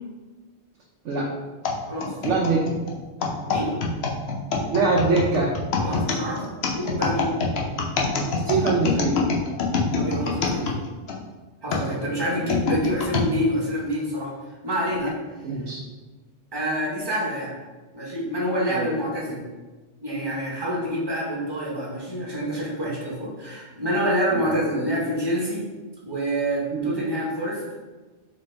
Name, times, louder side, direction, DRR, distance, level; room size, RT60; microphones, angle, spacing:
sound 1, 1.6-11.2 11.7-13.3 13.9-14.0 14.9-15.1, left 4 dB, 70° left, 0.9 m, -25 dB
voice 1, 2.2-2.6 4.7-5.5 8.0-8.1 8.5-9.2 11.7-12.1 15.4-15.8 18.7-18.9 24.3-24.5 26.7-26.9, right 3 dB, 85° right, -2 dB, 0.9 m, -23 dB
voice 2, 3.5-3.8 5.8-7.3 9.9-10.8 11.6-14.3 14.6-15.2 16.5-17.5 17.9-19.4 20.0-25.6 26.1-27.6, equal, 25° right, -5 dB, 1.0 m, -27 dB
4.0 x 3.3 x 3.3 m, 1.3 s
omnidirectional pair, 1.2 m